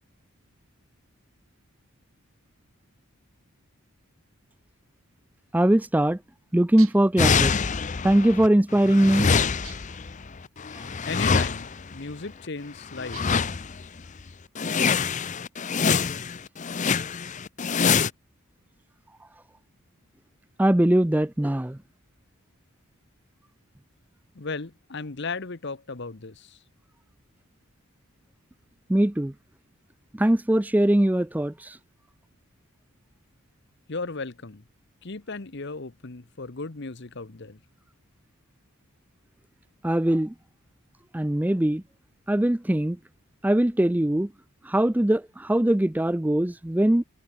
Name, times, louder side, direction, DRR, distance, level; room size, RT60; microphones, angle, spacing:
voice 1, 5.5-6.2 6.5-7.5 8.0-9.3 20.6-21.8 28.9-29.3 30.2-31.8 39.8-40.3 41.1-41.8 42.3-43.0 43.4-44.3 44.7-47.0, right 1 dB, 10° right, 0.4 m, -21 dB
sound 1, 6.8-7.2 9.6-10.1 13.1-13.6, right 12 dB, 70° right, 6.8 m, -46 dB
sound 2, 7.2-8.5 8.7-11.9 12.9-13.8 14.2-14.3 14.6-18.1, left 5 dB, 35° left, 0.6 m, -25 dB
voice 2, 11.1-13.5 24.3-26.6 33.9-34.6 35.0-37.6, left 4 dB, 50° left, 1.1 m, -36 dB
head